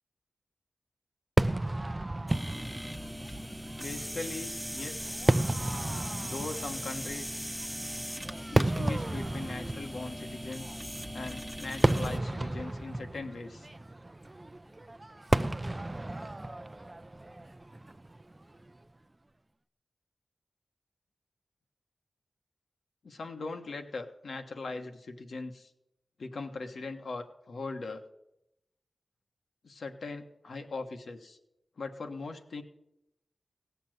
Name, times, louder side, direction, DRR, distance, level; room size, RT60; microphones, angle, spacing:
Fireworks, 1.4-18.7, right 2 dB, 30° right, 0.5 m, -33 dB
sound 1, 2.3-12.2, equal, ahead, 0.8 m, -39 dB
voice 1, 3.8-5.1 6.2-7.4 8.5-10.7 11.1-13.7 23.0-25.7 26.2-28.0 29.6-31.4 31.8-32.6, left 3 dB, 80° left, 5 dB, 1.3 m, -40 dB
17.0 x 7.1 x 7.9 m, 0.86 s
cardioid pair, 50°, 0 cm